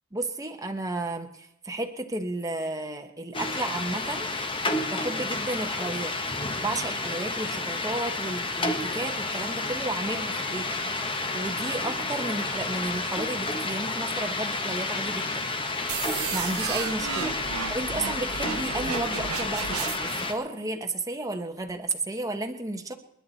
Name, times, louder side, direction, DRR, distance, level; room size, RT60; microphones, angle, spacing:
voice 1, 0.1-4.3 4.9-6.2 6.6-10.7 11.3-15.5 16.3-17.4 17.7-22.9, right 2 dB, 15° right, 4 dB, 1.2 m, -33 dB
sound 1, 3.3-20.3, left 3 dB, 25° left, 1.4 m, -30 dB
sound 2, 15.9-20.3, right 10 dB, 85° right, 0.5 m, -34 dB
29.0 x 11.0 x 4.2 m, 0.83 s
head